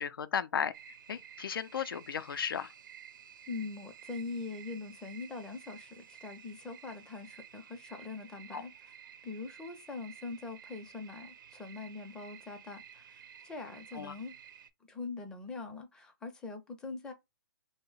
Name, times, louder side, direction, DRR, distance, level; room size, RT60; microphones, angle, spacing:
voice 1, 0.0-2.7 8.5-8.6 13.9-14.2, left 7 dB, 85° left, 0.4 m, -35 dB
sound 1, 0.7-14.7, right 8 dB, 65° right, 0.5 m, -53 dB
voice 2, 3.5-8.7 9.2-14.3 14.9-17.1, left 3 dB, 5° left, 0.5 m, -42 dB
2.9 x 2.1 x 3.8 m
hypercardioid pair, 150°, 12 cm